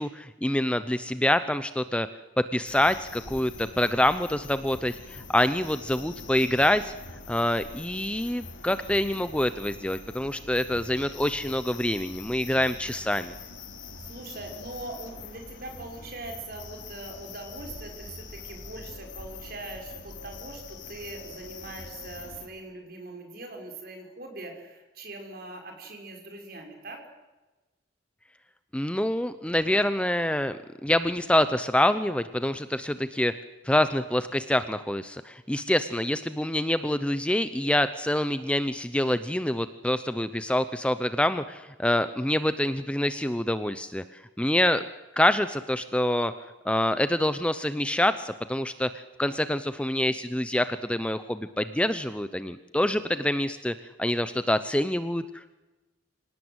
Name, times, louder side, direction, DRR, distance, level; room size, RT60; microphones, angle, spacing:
voice 1, 0.0-2.1 2.4-6.9 7.3-13.3 28.7-33.3 33.6-44.8 45.2-46.3 46.6-55.6, left 1 dB, 5° left, 12 dB, 0.7 m, -26 dB
sound 1, 2.7-22.5, left 4 dB, 80° left, 3.8 m, -44 dB
voice 2, 14.0-27.0, right 2 dB, 50° right, 3 dB, 5.7 m, -41 dB
26.0 x 18.0 x 8.1 m, 1.1 s
head